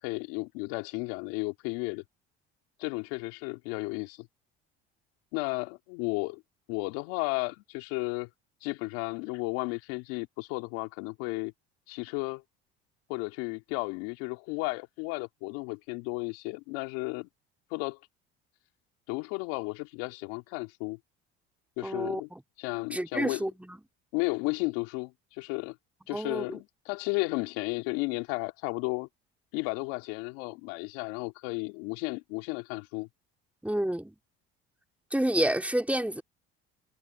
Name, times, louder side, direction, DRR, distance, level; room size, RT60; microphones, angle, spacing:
voice 1, 0.0-2.0 2.8-4.3 5.3-6.4 6.7-8.3 8.6-11.5 11.9-12.4 13.1-17.3 17.7-18.0 19.1-21.0 21.8-22.3 22.6-23.4 24.1-25.8 26.1-29.1 29.5-33.1, left 28 dB, 80° left, 3.1 m, -33 dB
voice 2, 21.8-22.4 22.9-23.8 26.1-26.6 33.6-34.1 35.1-36.2, right 1 dB, 5° right, 4.2 m, -29 dB
supercardioid pair, 80°, 30 cm